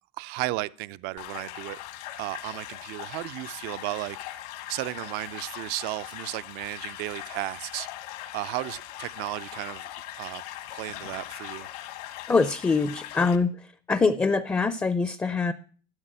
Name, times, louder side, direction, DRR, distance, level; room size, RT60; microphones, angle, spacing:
voice 1, 0.2-1.8 2.2-4.2 4.7-7.9 8.3-9.9 10.2-10.4 10.7-11.7, right 19 dB, 55° right, 0.5 m, -34 dB
sound 1, 1.2-13.4, left 13 dB, 70° left, 1.6 m, -40 dB
voice 2, 12.3-15.5, left 4 dB, 10° left, 0.5 m, -24 dB
12.5 x 6.1 x 8.9 m
supercardioid pair, 135°, 20 cm